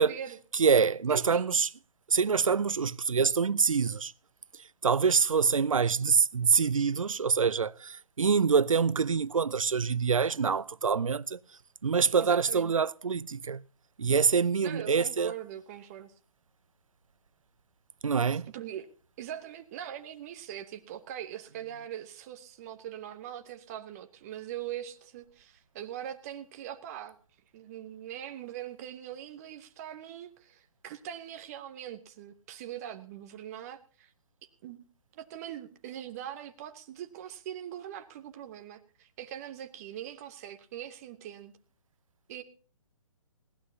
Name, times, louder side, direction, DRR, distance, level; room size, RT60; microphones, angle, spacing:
voice 1, 0.0-0.4 1.1-1.4 12.2-12.7 14.6-16.1 18.5-18.9 19.2-27.2 27.5-34.1 34.6-34.8 35.1-41.5 42.3-42.4, right 11 dB, 25° right, 1.0 m, -42 dB
voice 2, 0.5-1.7 2.1-4.1 4.8-11.4 11.8-13.6 14.0-15.3 18.0-18.5, right 5 dB, 70° right, 0.6 m, -25 dB
21.0 x 16.5 x 2.8 m
figure-of-eight pair, 135°, 18 cm